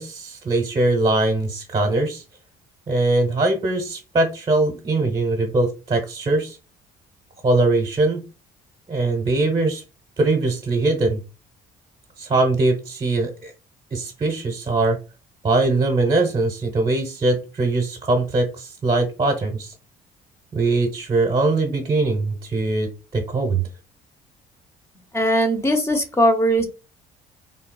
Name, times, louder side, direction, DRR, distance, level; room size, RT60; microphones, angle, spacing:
voice 1, 0.0-2.2 2.9-6.6 7.4-8.2 8.9-9.8 10.2-11.2 12.2-13.5 13.9-15.0 15.4-19.7 20.5-23.6, right 2 dB, 30° right, 2 dB, 0.9 m, -21 dB
voice 2, 25.1-26.6, equal, 15° left, 6 dB, 0.8 m, -19 dB
3.7 x 2.2 x 2.2 m, 0.30 s
cardioid pair, 100°, 17 cm